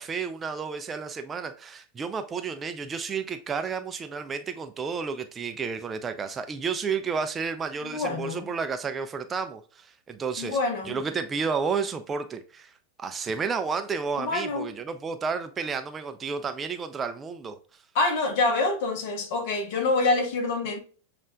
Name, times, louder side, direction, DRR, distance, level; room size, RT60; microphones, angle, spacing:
voice 1, 0.0-10.6 10.8-12.7 13.0-17.6, right 5 dB, 20° right, 0.4 m, -31 dB
voice 2, 7.8-8.5 10.4-11.0 14.2-14.7 17.9-20.8, left 3 dB, 50° left, 1.0 m, -26 dB
7.2 x 2.4 x 2.2 m
figure-of-eight pair, 90°, 0 cm